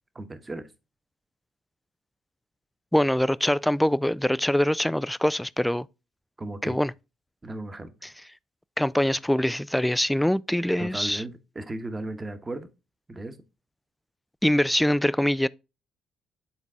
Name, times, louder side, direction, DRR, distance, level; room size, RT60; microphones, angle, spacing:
voice 1, 0.1-0.7 6.4-6.8 7.4-7.9 10.8-12.7 13.1-13.4, right 2 dB, 25° right, 1.1 m, -35 dB
voice 2, 2.9-5.9 6.6-6.9 8.8-11.2 14.4-15.5, left 1 dB, 5° left, 0.3 m, -23 dB
8.4 x 3.9 x 3.6 m
hypercardioid pair, 55°, 0 cm